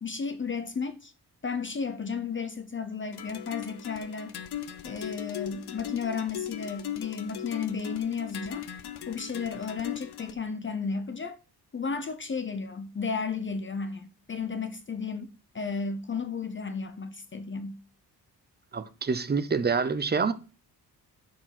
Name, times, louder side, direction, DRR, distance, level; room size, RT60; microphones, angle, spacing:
voice 1, 0.0-1.1 1.4-4.4 4.8-8.7 9.1-11.4 11.7-15.3 15.5-17.8, left 5 dB, 30° left, 0.6 m, -33 dB
sound 1, 3.1-10.3, left 11 dB, 70° left, 0.8 m, -39 dB
voice 2, 18.7-20.3, right 5 dB, 25° right, 0.7 m, -26 dB
6.6 x 4.7 x 5.9 m
wide cardioid pair, 140°, 40 cm